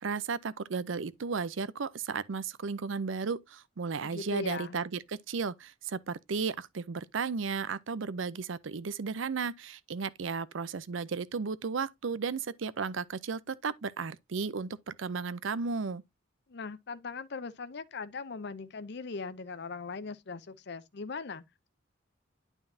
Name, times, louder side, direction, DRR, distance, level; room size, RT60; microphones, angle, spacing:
voice 1, 0.0-16.0, right 5 dB, 75° right, 0.6 m, -34 dB
voice 2, 4.0-4.8 16.5-21.7, left 4 dB, 60° left, 0.6 m, -40 dB
9.3 x 5.4 x 2.7 m
head